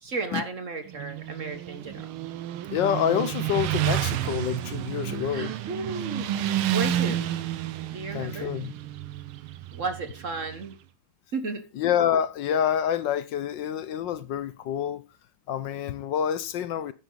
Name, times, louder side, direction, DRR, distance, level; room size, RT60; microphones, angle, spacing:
voice 1, 0.0-2.1 5.3-6.3 6.7-7.2 7.9-8.5 9.7-10.8 11.3-11.7, right 4 dB, 45° right, 1.3 m, -33 dB
Motorcycle, 0.9-10.7, right 12 dB, 75° right, 1.6 m, -30 dB
voice 2, 2.7-5.5 6.9-7.3 8.1-8.7 11.7-15.0 15.5-16.9, left 9 dB, 65° left, 1.2 m, -27 dB
10.5 x 9.4 x 3.9 m
omnidirectional pair, 2.4 m